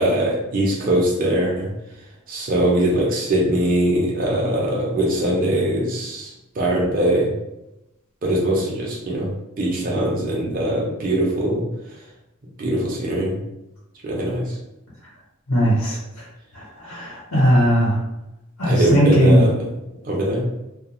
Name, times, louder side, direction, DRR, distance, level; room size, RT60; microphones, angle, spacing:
voice 1, 0.0-1.7 2.3-7.3 8.2-11.7 12.6-13.4 14.0-14.6 18.7-19.5 20.0-20.5, right 1 dB, 40° right, -3 dB, 0.6 m, -21 dB
voice 2, 15.5-16.2 16.5-18.0 18.6-19.4, equal, 85° left, -5 dB, 0.9 m, -18 dB
2.3 x 2.3 x 2.9 m, 0.91 s
head